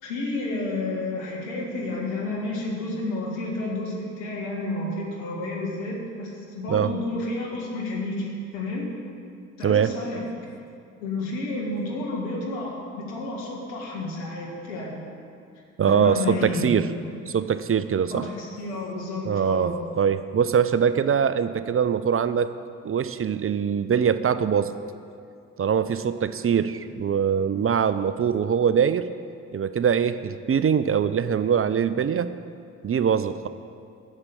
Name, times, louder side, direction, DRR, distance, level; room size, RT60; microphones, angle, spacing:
voice 1, 0.0-8.9 9.6-10.2 11.0-15.2 15.9-16.8 18.1-19.7, left 2 dB, 85° left, -2 dB, 2.1 m, -30 dB
voice 2, 9.6-10.0 15.8-16.9 17.3-18.3 19.2-22.5 22.8-24.7 25.6-29.1 29.5-32.3 32.8-33.5, right 7 dB, 35° right, 13 dB, 0.6 m, -23 dB
9.7 x 7.4 x 8.5 m, 2.4 s
hypercardioid pair, 45°, 39 cm